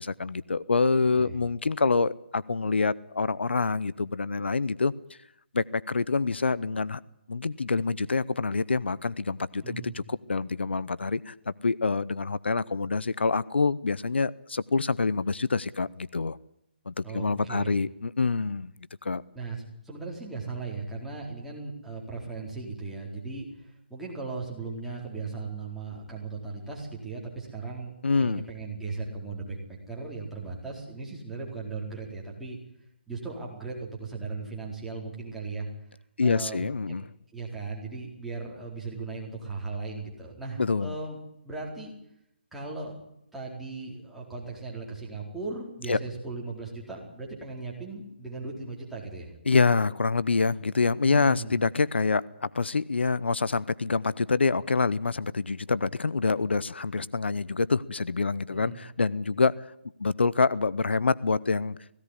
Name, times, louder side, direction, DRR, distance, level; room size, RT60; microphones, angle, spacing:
voice 1, 0.0-4.9 5.5-7.0 7.3-16.4 16.9-18.7 19.0-19.2 28.0-28.4 36.2-37.1 40.6-41.0 45.9-46.0 49.5-59.5 60.0-61.8, left 4 dB, 85° left, 18 dB, 0.8 m, -26 dB
voice 2, 9.6-9.9 17.0-17.8 19.3-19.6 19.8-32.6 33.1-35.7 36.2-37.0 37.3-41.2 41.4-41.9 42.5-43.0 43.3-49.3 51.0-51.6 58.5-58.8, right 4 dB, ahead, -4 dB, 4.4 m, -37 dB
18.0 x 17.0 x 9.9 m, 0.78 s
hypercardioid pair, 160°, 6 cm